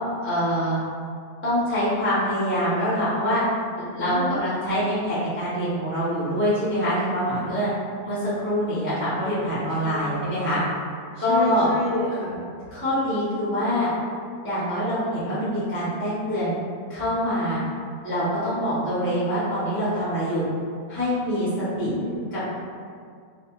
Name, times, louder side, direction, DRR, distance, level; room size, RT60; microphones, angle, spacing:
voice 1, 0.2-0.8 1.4-3.4 3.9-7.7 8.0-10.6 11.2-11.7 12.7-13.9 14.4-16.5 16.9-17.6 18.0-20.5 20.9-21.5 21.8-21.9 22.3-22.4, equal, 15° left, -11 dB, 0.4 m, -25 dB
voice 2, 4.0-4.4 9.8-10.6 11.1-12.4 21.4-22.3, left 2 dB, 70° left, -9 dB, 0.6 m, -30 dB
2.4 x 2.3 x 2.9 m, 2.2 s
omnidirectional pair, 1.6 m